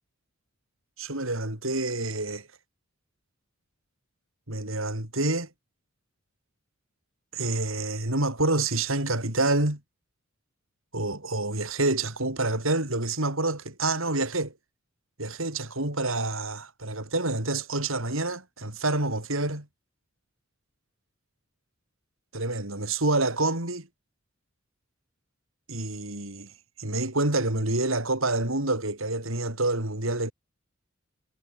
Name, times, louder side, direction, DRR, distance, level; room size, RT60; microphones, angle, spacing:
voice 1, 1.0-2.5 4.5-5.5 7.3-9.8 10.9-14.5 15.2-19.7 22.3-23.9 25.7-26.5 26.8-30.3, right 2 dB, 75° right, 6.0 m, -27 dB
head